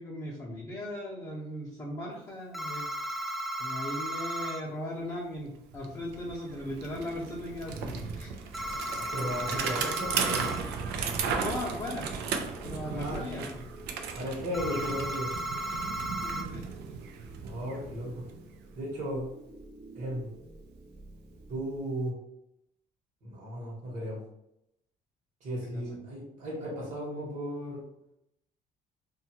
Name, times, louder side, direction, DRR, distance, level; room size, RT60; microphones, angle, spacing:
voice 1, 0.0-3.1 3.6-8.3 11.2-12.1 12.6-13.5 16.2-16.6 25.6-26.0, left 1 dB, 20° left, -7 dB, 0.7 m, -38 dB
sound 1, 2.5-4.6 8.5-10.6 14.5-16.4, right 1 dB, ahead, 0.3 m, -35 dB
Bicycle, 5.3-5.4 5.7-18.6, right 6 dB, 80° right, 0.4 m, -36 dB
sound 2, 6.5-21.8, right 2 dB, 30° right, 0.7 m, -50 dB
voice 2, 9.1-10.5 12.9-13.4 14.1-15.3 17.4-18.2 18.7-19.3 19.9-20.3 21.5-22.2 23.2-24.2 25.4-27.8, equal, 45° right, -5 dB, 1.2 m, -35 dB
2.7 x 2.4 x 2.8 m, 0.81 s
cardioid pair, 110°, 17 cm